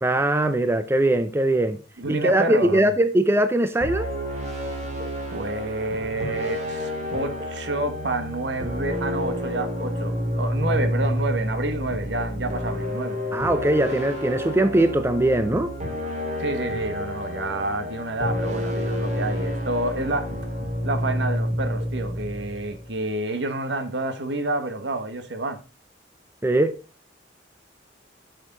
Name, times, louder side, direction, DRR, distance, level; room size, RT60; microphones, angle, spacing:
voice 1, 0.0-1.8 2.1-4.1 13.3-15.7 26.4-26.7, right 1 dB, 15° right, 0.4 m, -21 dB
voice 2, 2.0-2.9 5.3-13.2 16.4-20.3 20.8-25.6, right 2 dB, 65° right, 1.2 m, -29 dB
sound 1, 3.8-23.0, equal, 35° right, 2.1 m, -29 dB
8.5 x 6.5 x 3.7 m
head